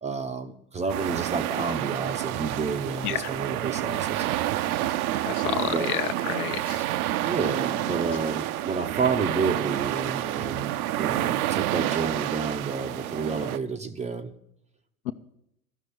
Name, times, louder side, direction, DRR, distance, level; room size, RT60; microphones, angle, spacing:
voice 1, 0.0-4.5 5.7-5.9 7.2-14.3, right 5 dB, 15° right, 8 dB, 0.6 m, -30 dB
sound 1, 0.9-13.6, right 14 dB, 65° right, 0.7 m, -29 dB
voice 2, 5.2-6.8 15.1-15.2, left 14 dB, 60° left, 12 dB, 0.8 m, -30 dB
12.0 x 6.1 x 9.1 m, 0.76 s
hypercardioid pair, 100°, 48 cm